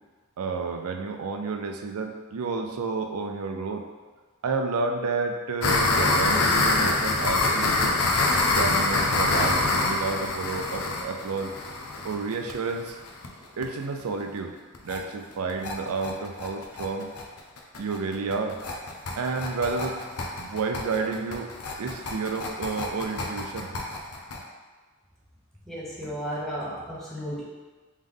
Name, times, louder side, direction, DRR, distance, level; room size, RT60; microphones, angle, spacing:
voice 1, 0.4-3.8 4.4-7.9 8.4-11.5 12.0-13.0 13.6-14.5 14.8-17.1 17.8-18.6 19.2-20.0 20.4-21.5 21.8-23.7, right 4 dB, 80° right, 4 dB, 0.5 m, -30 dB
sound 1, 5.6-13.3 13.6-13.7 14.0-14.1 14.4-14.5 14.7-15.0 15.3-24.4, left 3 dB, 85° left, 0.6 m, -25 dB
voice 2, 25.6-27.4, equal, ahead, -7 dB, 0.9 m, -34 dB
3.8 x 3.1 x 3.5 m, 1.3 s
head